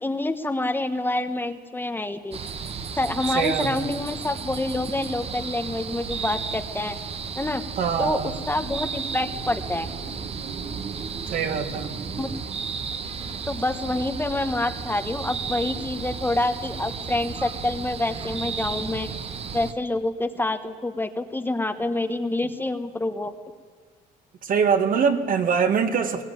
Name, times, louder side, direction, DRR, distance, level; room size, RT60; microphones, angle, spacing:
voice 1, 0.0-2.4 3.0-7.0 7.4-7.6 8.0-9.9 12.2-12.3 13.5-19.1 19.5-23.3, left 2 dB, 10° left, 8 dB, 1.2 m, -27 dB
sound 1, 2.3-19.7, right 5 dB, 35° right, 1.2 m, -33 dB
voice 2, 3.3-3.8 7.8-8.4 11.3-12.0 24.4-26.2, right 6 dB, 55° right, 6 dB, 2.2 m, -23 dB
20.5 x 20.5 x 9.3 m, 1.6 s
cardioid pair, 110°, 17 cm